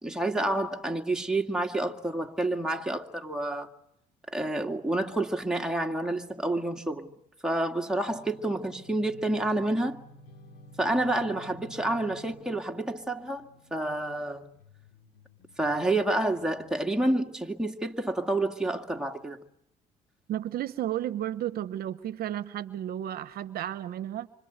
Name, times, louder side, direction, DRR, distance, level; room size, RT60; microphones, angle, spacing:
voice 1, 0.0-3.7 4.3-7.1 7.4-10.0 10.8-14.5 15.6-19.4, right 1 dB, 5° right, 2.0 m, -29 dB
sound 1, 7.9-17.3, left 1 dB, 75° left, 4.7 m, -53 dB
voice 2, 20.3-24.3, right 12 dB, 65° right, 0.9 m, -33 dB
26.0 x 25.5 x 8.1 m
cardioid pair, 110°, 17 cm